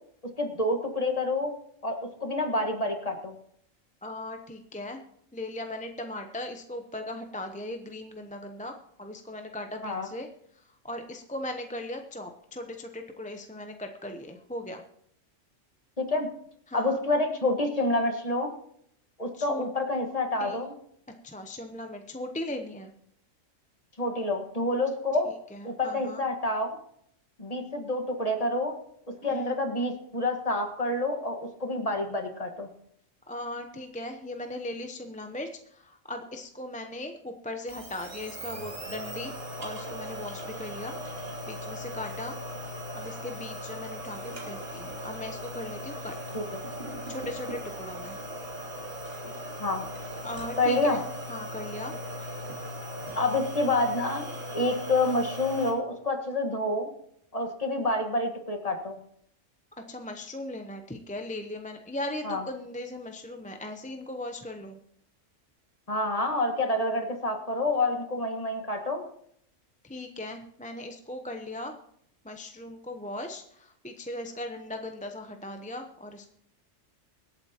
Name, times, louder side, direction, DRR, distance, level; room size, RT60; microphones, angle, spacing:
voice 1, 0.4-1.5 1.8-3.4 9.8-10.1 16.0-16.3 16.7-18.5 19.2-20.7 24.0-25.3 25.6-26.7 27.4-28.7 29.1-32.7 46.3-46.4 49.6-49.8 50.6-51.0 53.1-54.3 54.5-56.9 57.3-59.0 62.2-62.4 65.9-69.0, left 2 dB, 30° left, 4 dB, 1.6 m, -28 dB
voice 2, 4.0-5.0 5.3-10.3 10.5-14.8 16.7-17.0 19.3-19.7 20.4-20.6 21.2-22.9 25.5-26.2 29.2-29.6 33.3-39.3 39.6-41.0 41.5-42.4 42.9-46.1 47.1-48.2 50.2-51.0 51.3-52.0 59.9-64.8 69.8-71.8 72.2-76.3, left 1 dB, 10° left, 4 dB, 0.6 m, -38 dB
sound 1, 37.7-55.7, equal, 45° right, 3.0 m, -38 dB
24.5 x 8.6 x 2.9 m, 0.69 s
omnidirectional pair, 1.3 m